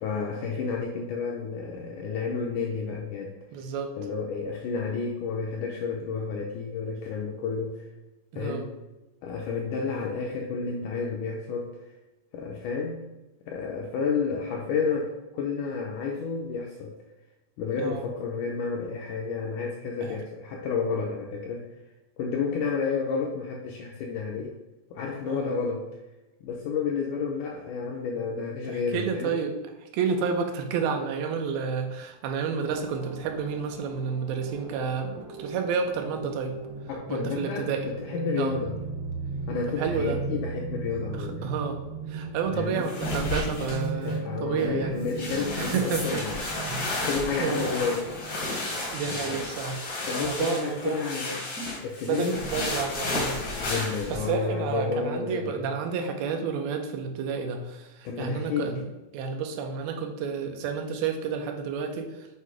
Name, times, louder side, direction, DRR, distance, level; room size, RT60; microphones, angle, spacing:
voice 1, 0.0-3.3 4.0-7.9 8.3-8.7 9.2-11.7 12.3-13.0 13.5-16.9 17.6-21.7 22.2-24.6 24.9-25.9 26.4-29.4 36.9-38.8 39.5-41.5 42.5-42.9 44.0-46.7 47.0-48.5 49.1-49.4 50.1-51.4 51.8-52.4 53.6-55.7 58.1-58.8, left 5 dB, 85° left, 0 dB, 1.8 m, -31 dB
voice 2, 3.5-3.9 8.3-8.6 17.8-18.0 20.0-20.2 25.2-25.5 28.7-29.5 29.8-36.6 37.1-37.9 38.4-38.6 39.8-40.2 41.2-41.8 42.1-45.0 45.6-46.9 47.4-47.7 48.9-49.8 50.2-51.0 52.0-53.4 54.1-62.3, right 6 dB, 90° right, 4 dB, 2.6 m, -30 dB
sound 1, 32.6-49.8, right 3 dB, 70° right, 1.5 m, -38 dB
sound 2, 42.8-44.1 44.6-44.7 45.0-54.3, left 2 dB, 65° left, 1.0 m, -32 dB
7.9 x 2.7 x 4.8 m, 1.0 s
omnidirectional pair, 4.2 m